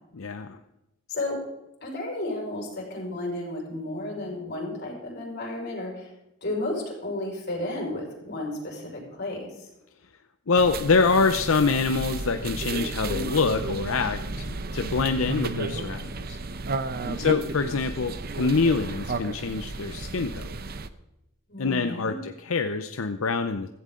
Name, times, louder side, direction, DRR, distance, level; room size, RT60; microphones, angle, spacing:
voice 1, 0.1-0.6 10.5-16.4 17.2-20.5 21.6-23.7, left 4 dB, 85° left, 8 dB, 0.7 m, -25 dB
voice 2, 1.1-1.4 1.8-6.1 6.4-9.7 17.0-17.3 21.5-22.2, left 2 dB, 55° left, -1 dB, 5.6 m, -33 dB
sound 1, 10.6-20.9, right 3 dB, 50° right, 0.7 m, -33 dB
16.0 x 15.0 x 3.8 m, 0.90 s
head